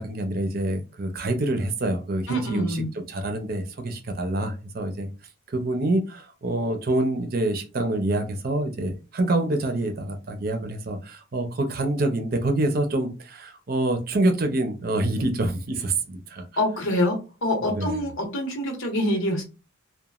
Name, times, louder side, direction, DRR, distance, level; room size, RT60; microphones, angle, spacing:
voice 1, 0.0-5.1 5.5-16.4 17.6-17.9, right 2 dB, 50° right, 6 dB, 0.5 m, -26 dB
voice 2, 2.3-2.9 16.6-19.4, left 1 dB, 85° left, 2 dB, 1.0 m, -25 dB
3.0 x 2.2 x 2.3 m, 0.31 s
head